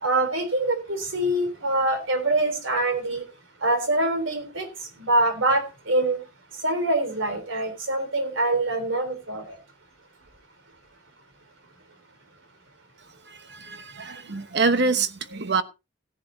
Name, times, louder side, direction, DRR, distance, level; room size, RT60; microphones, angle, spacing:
voice 1, 0.0-3.2 3.6-4.7 5.0-6.2 6.6-9.4, right 2 dB, 80° right, 3.5 m, -24 dB
voice 2, 13.3-15.6, right 4 dB, 60° right, 1.1 m, -25 dB
17.0 x 10.0 x 2.7 m
head